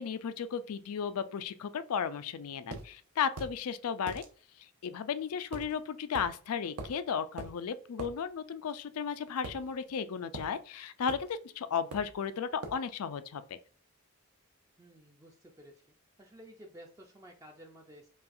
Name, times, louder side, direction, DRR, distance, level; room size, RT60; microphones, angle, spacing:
voice 1, 0.0-4.2 4.8-13.6, left 7 dB, 85° left, 0.4 m, -35 dB
sound 1, 2.7-2.9 3.4-3.6 4.1-4.3 5.5-5.7 6.1-6.3 6.8-7.0 7.4-7.5 8.0-8.1 9.4-10.0 10.3-10.5 11.1-11.3 11.9-12.2 12.6-12.8, right 2 dB, 90° right, 0.7 m, -42 dB
voice 2, 14.8-18.1, equal, 15° right, 0.4 m, -54 dB
5.4 x 2.3 x 2.5 m
head